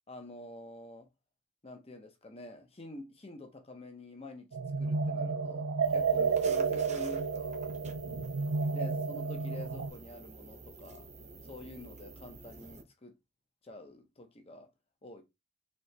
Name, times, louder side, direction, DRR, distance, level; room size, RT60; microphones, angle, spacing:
voice 1, 0.1-1.1 1.6-4.5 4.8-7.6 8.7-11.1 11.4-13.1 13.6-14.7 15.0-15.2, left 2 dB, 30° left, 0.9 m, -48 dB
sound 1, 4.5-9.9, right 5 dB, 75° right, 0.6 m, -31 dB
sound 2, 5.8-12.8, right 3 dB, 35° right, 0.7 m, -50 dB
4.3 x 3.0 x 3.3 m
head